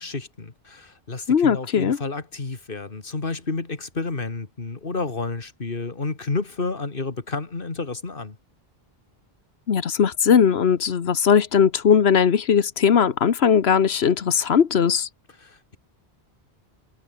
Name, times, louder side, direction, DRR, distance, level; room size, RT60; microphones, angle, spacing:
voice 1, 0.0-8.4 15.4-15.8, left 3 dB, 60° left, 2.4 m, -30 dB
voice 2, 1.3-2.0 9.7-15.1, left 7 dB, 80° left, 1.4 m, -19 dB
omnidirectional pair, 1.0 m